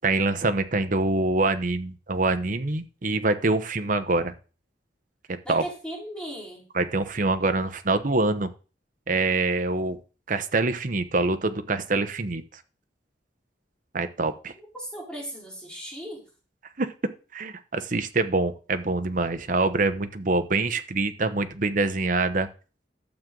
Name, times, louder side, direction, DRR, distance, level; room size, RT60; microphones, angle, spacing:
voice 1, 0.0-4.3 5.3-5.6 6.7-8.5 9.1-10.0 10.3-12.4 13.9-14.5 16.8-16.9 17.3-22.5, right 3 dB, 50° right, 9 dB, 0.9 m, -25 dB
voice 2, 5.4-6.7 14.6-16.2, right 1 dB, 5° left, -4 dB, 4.3 m, -37 dB
12.0 x 7.5 x 3.9 m, 0.35 s
head